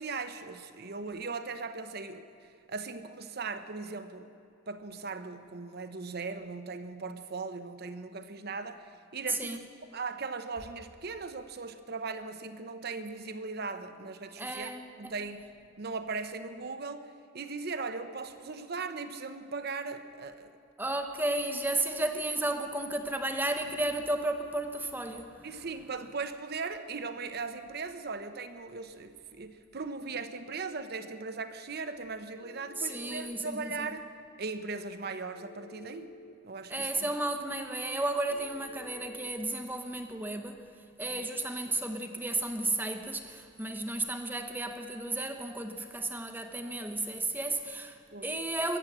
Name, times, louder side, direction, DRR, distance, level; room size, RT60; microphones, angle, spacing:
voice 1, 0.0-2.2 2.7-4.3 4.7-9.6 9.9-14.7 15.0-15.5 15.8-20.5 25.4-34.1 34.4-36.1 36.4-36.9 41.1-41.3 48.1-48.3, right 4 dB, 55° right, 9 dB, 0.9 m, -38 dB
voice 2, 9.3-9.6 14.4-15.1 20.8-25.5 32.8-33.9 36.7-40.6 41.0-48.8, right 2 dB, 10° right, 5 dB, 1.0 m, -33 dB
Telephone, 32.4-33.4 35.3-36.4 38.3-39.3, left 2 dB, 45° left, 0.7 m, -50 dB
23.5 x 8.2 x 7.5 m, 2.5 s
head